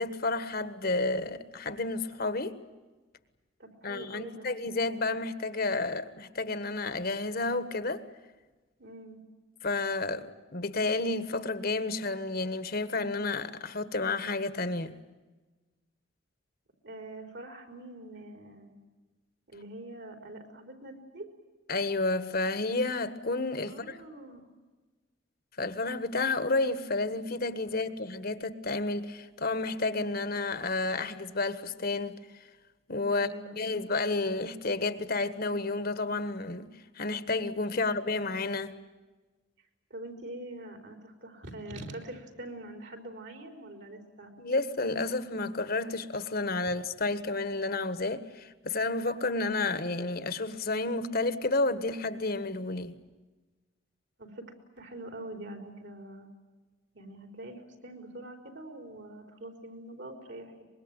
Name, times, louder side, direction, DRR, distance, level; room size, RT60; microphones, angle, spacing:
voice 1, 0.0-2.5 3.8-8.0 9.6-14.9 21.7-24.0 25.6-32.1 32.9-33.3 33.5-36.7 37.0-38.7 44.4-53.0, left 3 dB, 55° left, 1.5 m, -31 dB
voice 2, 3.6-4.5 8.8-9.2 16.8-18.7 19.5-21.3 23.7-24.4 27.6-27.7 33.1-33.6 37.7-37.8 39.9-44.3 54.2-56.3 56.9-60.6, right 1 dB, 65° right, 4.2 m, -44 dB
24.5 x 21.5 x 9.1 m
head